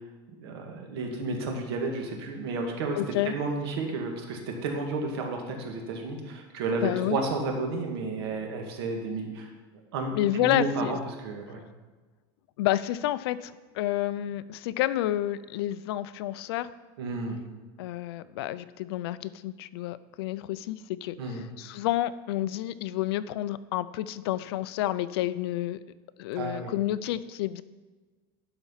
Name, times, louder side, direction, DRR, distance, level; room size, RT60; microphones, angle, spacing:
voice 1, 0.4-3.0 3.3-9.5 9.9-11.6 17.0-17.4 21.2-21.5 26.4-26.7, right 3 dB, 85° right, 2 dB, 1.8 m, -32 dB
voice 2, 3.0-3.3 6.8-7.2 10.1-11.0 12.6-16.7 17.8-25.8 26.2-27.6, left 14 dB, 85° left, 16 dB, 0.5 m, -30 dB
12.0 x 4.4 x 5.7 m, 1.3 s
supercardioid pair, 165°, 13 cm